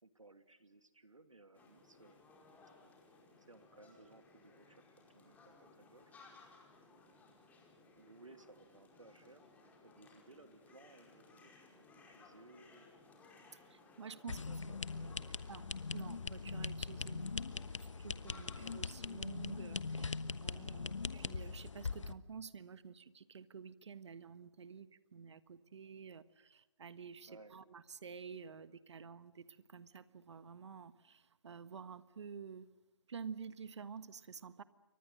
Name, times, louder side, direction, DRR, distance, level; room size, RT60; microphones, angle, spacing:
voice 1, 0.0-2.3 3.4-6.1 8.0-9.5 9.8-12.9 14.0-15.4 27.3-27.5, right 2 dB, 90° right, 9 dB, 2.4 m, -61 dB
sound 1, 1.5-19.6, left 3 dB, 10° left, 4.8 m, -62 dB
voice 2, 13.7-14.4 14.9-15.1 15.5-15.6 15.9-17.4 17.8-32.7 33.1-34.6, right 6 dB, 65° right, 13 dB, 1.4 m, -50 dB
sound 2, 14.3-22.1, left 4 dB, 80° left, 1.2 m, -41 dB
29.0 x 24.5 x 6.6 m, 1.1 s
figure-of-eight pair, 145°, 16 cm